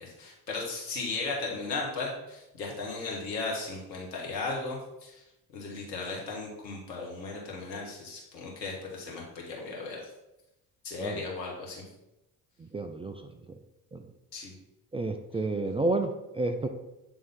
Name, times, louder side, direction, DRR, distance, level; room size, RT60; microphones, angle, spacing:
voice 1, 0.0-5.2 5.5-10.0 10.8-11.8 14.3-14.5, left 3 dB, 85° left, -2 dB, 1.4 m, -36 dB
voice 2, 12.6-13.2 13.9-14.0 14.9-16.7, right 2 dB, 15° right, 6 dB, 0.3 m, -30 dB
8.5 x 3.6 x 3.6 m, 0.92 s
hypercardioid pair, 50°, 49 cm